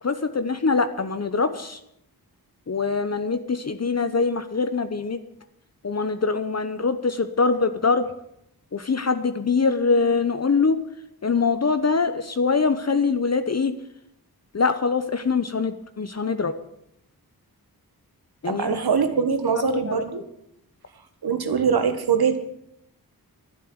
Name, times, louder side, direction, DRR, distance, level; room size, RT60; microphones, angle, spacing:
voice 1, 0.0-1.8 2.7-5.2 5.8-8.1 8.7-10.8 11.2-13.7 14.5-16.5 18.4-18.9 19.6-20.2, left 4 dB, 45° left, 10 dB, 0.9 m, -23 dB
voice 2, 18.4-20.2 21.2-22.4, right 6 dB, 80° right, 8 dB, 1.8 m, -22 dB
12.0 x 10.5 x 9.7 m, 0.77 s
wide cardioid pair, 95°, 37 cm